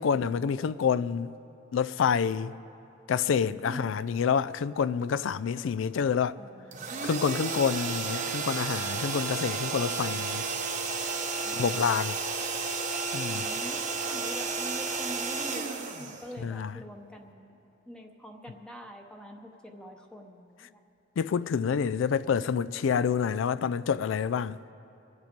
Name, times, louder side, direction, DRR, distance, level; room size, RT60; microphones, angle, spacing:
voice 1, 0.0-1.3 1.7-2.5 3.1-6.4 7.0-10.5 11.6-12.2 13.1-13.4 16.4-16.7 21.2-24.7, left 6 dB, 85° left, 0.4 m, -28 dB
voice 2, 3.6-4.1 6.2-7.1 11.4-11.7 13.3-17.5 17.9-20.7, equal, 5° left, 0.7 m, -45 dB
sound 1, 6.7-16.7, right 4 dB, 40° right, 1.0 m, -32 dB
23.5 x 8.0 x 5.2 m
head